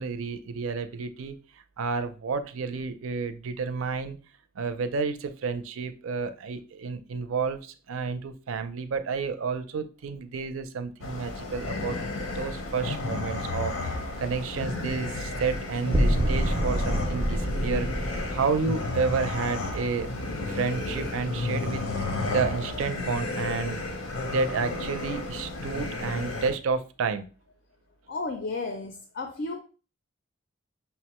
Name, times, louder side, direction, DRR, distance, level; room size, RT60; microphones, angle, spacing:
voice 1, 0.0-1.4 1.8-4.2 4.6-12.0 12.3-20.1 20.4-27.3, right 4 dB, 85° right, 0.4 m, -31 dB
sound 1, 11.0-26.5, left 2 dB, 90° left, 0.7 m, -32 dB
sound 2, 11.5-13.0 15.9-18.6, right 1 dB, 25° right, 0.3 m, -28 dB
voice 2, 28.1-29.6, left 3 dB, 55° left, 0.4 m, -33 dB
5.6 x 2.1 x 2.9 m
head